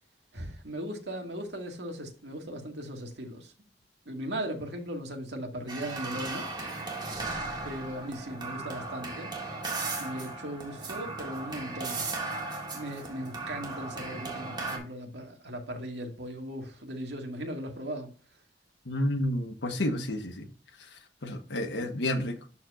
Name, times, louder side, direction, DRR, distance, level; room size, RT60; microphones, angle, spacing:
voice 1, 0.3-3.5 4.1-6.4 7.6-9.7 10.0-12.0 12.7-18.1 21.7-22.0, equal, 75° right, 2.0 m, -38 dB
sound 1, 5.7-14.8, right 3 dB, 25° right, 2.1 m, -36 dB
voice 2, 18.8-20.5 21.2-22.4, left 1 dB, 80° left, 1.3 m, -30 dB
12.5 x 4.4 x 2.5 m
head